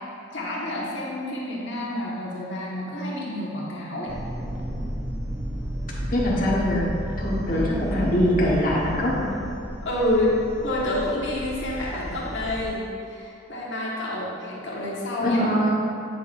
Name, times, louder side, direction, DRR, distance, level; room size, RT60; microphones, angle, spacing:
voice 1, 0.3-4.2 7.5-7.8 9.8-10.4 10.6-15.4, left 1 dB, 65° left, -6 dB, 1.7 m, -28 dB
sound 1, 4.1-12.7, equal, 5° right, 0.6 m, -32 dB
voice 2, 6.1-6.9 7.2-9.3 15.2-15.7, left 1 dB, 45° left, -5 dB, 1.5 m, -23 dB
9.3 x 6.3 x 2.7 m, 2.5 s
head